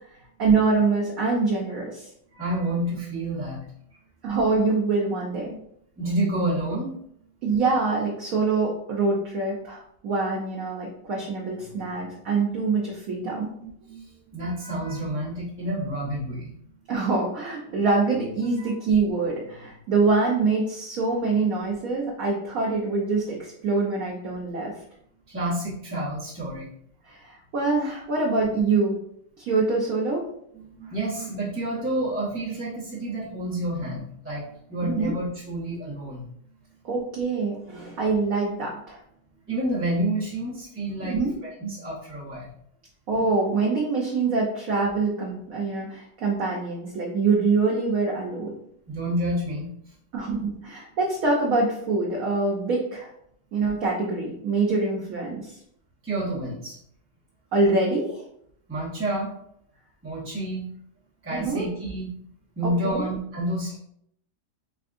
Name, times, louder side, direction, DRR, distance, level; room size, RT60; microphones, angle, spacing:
voice 1, 0.1-2.1 4.2-5.6 7.4-13.5 16.9-24.8 27.0-29.0 29.4-30.2 34.8-35.1 36.8-39.0 41.1-41.3 43.1-48.5 50.1-53.1 53.5-55.6 57.5-58.2 61.3-61.7 62.6-63.1, right 3 dB, 60° right, -4 dB, 1.0 m, -25 dB
voice 2, 2.3-3.6 6.0-6.9 13.2-16.5 18.6-18.7 25.3-26.7 30.5-36.3 39.5-42.5 48.9-49.7 56.0-56.8 58.7-59.3 60.0-60.6 61.2-62.1 62.6-63.8, right 1 dB, 15° right, -8 dB, 0.5 m, -29 dB
3.5 x 3.5 x 2.5 m, 0.70 s
omnidirectional pair, 1.8 m